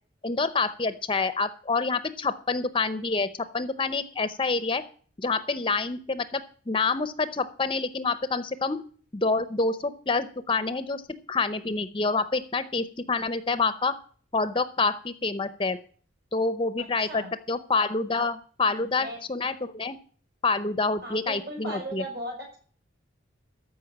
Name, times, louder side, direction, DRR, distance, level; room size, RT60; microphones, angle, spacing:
voice 1, 0.2-4.8 5.2-14.0 14.3-15.8 16.3-20.0 20.4-22.0, left 4 dB, 25° left, 13 dB, 0.7 m, -27 dB
voice 2, 16.8-17.3 18.7-19.2 21.0-22.6, equal, 55° right, 1 dB, 6.5 m, -38 dB
14.0 x 5.5 x 8.6 m, 0.43 s
head